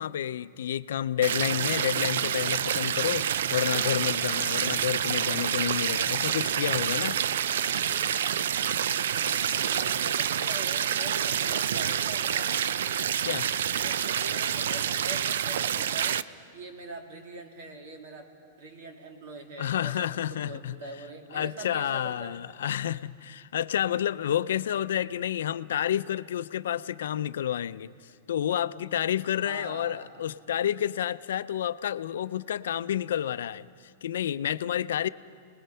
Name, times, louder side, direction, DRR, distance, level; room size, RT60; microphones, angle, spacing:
voice 1, 0.0-7.2 13.2-13.5 19.6-20.8 21.3-27.9 28.3-33.7 34.0-35.1, left 10 dB, 80° left, 15 dB, 0.5 m, -30 dB
sound 1, 1.2-16.2, right 9 dB, 75° right, 0.5 m, -28 dB
voice 2, 9.7-12.6 13.7-16.2 16.5-22.4 29.4-30.1, right 2 dB, 55° right, 3 dB, 2.6 m, -43 dB
29.5 x 20.0 x 5.6 m, 2.3 s
supercardioid pair, 175°, 0 cm